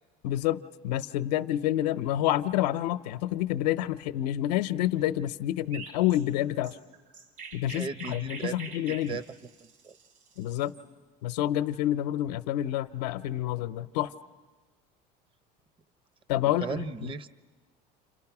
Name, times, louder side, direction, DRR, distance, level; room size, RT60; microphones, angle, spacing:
voice 1, 0.2-6.8 7.5-9.2 10.4-10.7 11.2-14.1 16.3-17.1, left 13 dB, 85° left, 12 dB, 0.7 m, -28 dB
Chirp tweet, 5.7-10.8, right 5 dB, 65° right, 4.8 m, -45 dB
voice 2, 7.7-8.6 8.9-9.2 9.8-10.0 16.6-17.3, right 5 dB, 25° right, 14 dB, 0.8 m, -36 dB
30.0 x 27.0 x 6.0 m, 1.4 s
supercardioid pair, 95°, 20 cm